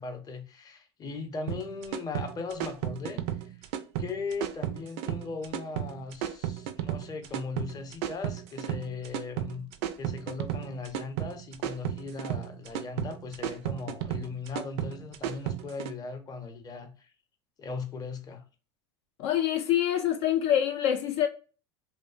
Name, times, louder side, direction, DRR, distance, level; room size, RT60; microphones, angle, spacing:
voice 1, 0.0-3.5 4.0-9.7 10.0-17.1 17.6-18.4, left 4 dB, 25° left, 0.6 m, -38 dB
sound 1, 1.5-15.9, right 11 dB, 65° right, 0.4 m, -33 dB
voice 2, 19.2-21.3, left 11 dB, 70° left, 0.4 m, -25 dB
2.7 x 2.0 x 2.4 m
hypercardioid pair, 90°, 15 cm